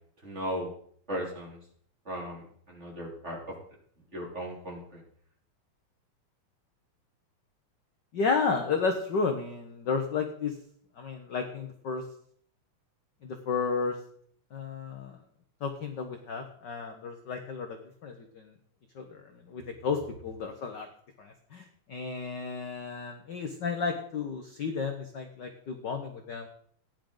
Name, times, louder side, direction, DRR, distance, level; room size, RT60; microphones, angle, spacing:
voice 1, 0.2-0.7 1.1-1.6 2.1-3.5 4.1-5.0, equal, 25° right, -2 dB, 3.3 m, -36 dB
voice 2, 8.1-10.5 11.0-12.0 13.2-14.0 14.5-15.2 15.6-18.5 18.9-20.9 21.2-26.5, left 5 dB, 65° left, 5 dB, 1.1 m, -32 dB
15.5 x 10.5 x 3.9 m, 0.62 s
omnidirectional pair, 3.3 m